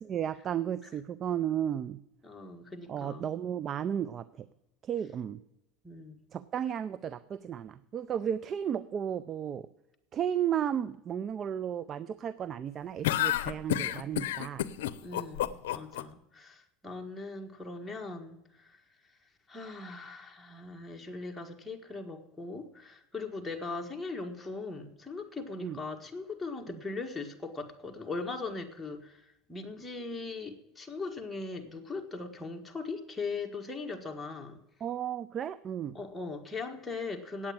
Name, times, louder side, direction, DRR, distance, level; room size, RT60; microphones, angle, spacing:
voice 1, 0.0-2.0 2.9-4.5 4.8-5.4 6.3-9.7 10.1-14.6 25.6-25.8 26.7-26.8 34.8-35.9, right 9 dB, 40° right, 17 dB, 0.5 m, -34 dB
voice 2, 2.2-3.3 5.8-6.2 15.0-18.8 19.5-34.6 35.9-37.5, left 3 dB, 10° left, 1 dB, 1.5 m, -40 dB
sound 1, 13.0-16.0, left 13 dB, 85° left, 0.6 m, -29 dB
8.8 x 8.6 x 8.7 m, 0.89 s
supercardioid pair, 105°, 0 cm